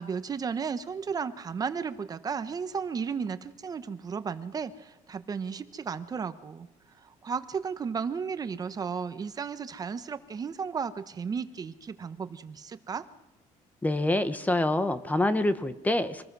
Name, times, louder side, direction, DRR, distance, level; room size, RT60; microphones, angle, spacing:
voice 1, 0.0-6.7 7.0-13.0, right 6 dB, 30° right, 11 dB, 1.0 m, -34 dB
voice 2, 13.8-16.2, left 1 dB, 10° left, 12 dB, 0.9 m, -26 dB
25.5 x 19.5 x 6.2 m, 1.0 s
cardioid pair, 155°, 13 cm